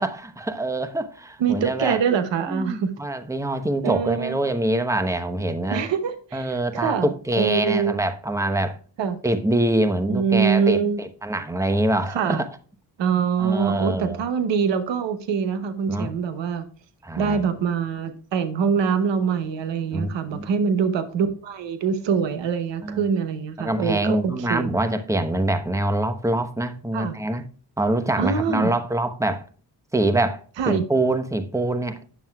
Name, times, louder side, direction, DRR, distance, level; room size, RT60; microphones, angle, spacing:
voice 1, 0.0-2.0 2.5-5.8 6.3-8.8 9.2-12.5 13.4-14.2 15.9-16.1 17.0-17.4 19.9-20.5 22.8-23.1 23.6-27.4 27.8-29.4 29.9-30.4 30.7-32.1, right 1 dB, 5° right, 1.0 m, -24 dB
voice 2, 1.4-2.9 3.8-4.4 5.7-8.0 9.0-9.2 10.1-11.0 12.1-12.4 13.0-16.6 17.2-24.7 26.9-27.1 28.2-28.7 30.6-30.8, right 6 dB, 90° right, 1.0 m, -24 dB
9.3 x 7.1 x 2.3 m
cardioid pair, 55°, 42 cm